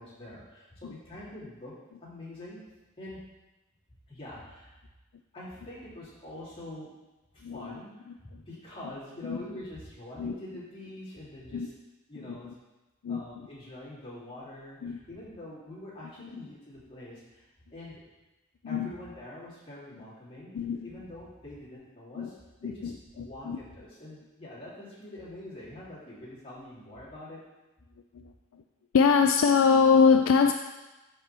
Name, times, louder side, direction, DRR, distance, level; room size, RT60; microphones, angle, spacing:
voice 1, 0.0-1.7 2.0-2.6 3.0-3.2 4.1-4.7 5.3-6.9 7.3-11.7 12.1-12.5 13.1-17.4 17.7-18.0 18.6-20.5 20.8-22.4 22.6-27.4, left 1 dB, 25° left, -9 dB, 2.9 m, -45 dB
voice 2, 7.4-7.8 9.2-9.4 10.2-10.3 11.5-11.7 12.3-12.5 13.0-13.2 14.8-15.0 16.3-16.4 18.6-18.9 20.5-20.9 22.2-22.3 22.8-23.6 28.1-28.3 28.9-30.5, left 5 dB, 65° left, 6 dB, 0.4 m, -23 dB
12.5 x 4.5 x 3.4 m, 1.1 s
head